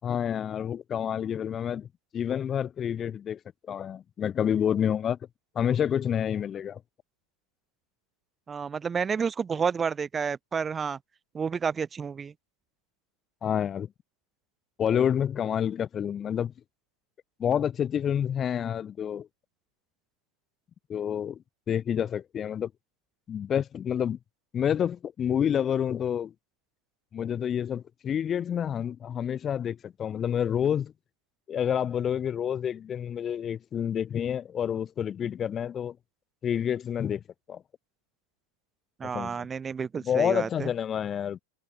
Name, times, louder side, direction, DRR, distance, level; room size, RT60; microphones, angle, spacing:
voice 1, 0.0-1.9 2.1-3.4 3.7-5.2 5.5-6.8 13.4-13.9 14.8-16.5 17.4-19.3 20.9-22.7 23.3-24.2 24.5-26.3 27.1-30.9 31.5-36.0 36.4-37.2 37.5-37.6 39.0-39.5 40.0-41.4, left 9 dB, 25° left, 6.4 m, -28 dB
voice 2, 8.5-11.0 11.3-12.3 39.0-40.7, right 6 dB, 20° right, 7.8 m, -30 dB
figure-of-eight pair, 90°, 0 cm